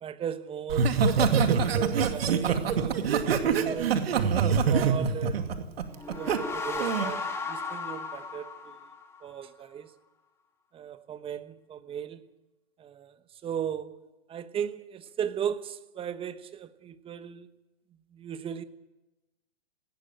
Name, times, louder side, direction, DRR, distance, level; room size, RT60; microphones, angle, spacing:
voice 1, 0.0-3.0 3.4-4.0 4.7-5.5 6.1-8.8 9.2-9.9 10.7-12.2 12.8-13.1 13.4-17.5 18.1-18.6, right 8 dB, 15° right, 1.1 m, -36 dB
Laughter, 0.7-6.4 6.8-7.1, right 6 dB, 65° right, 2.5 m, -25 dB
sound 1, 5.9-9.4, left 4 dB, 10° left, 2.7 m, -35 dB
19.0 x 16.5 x 9.2 m
hypercardioid pair, 125°, 32 cm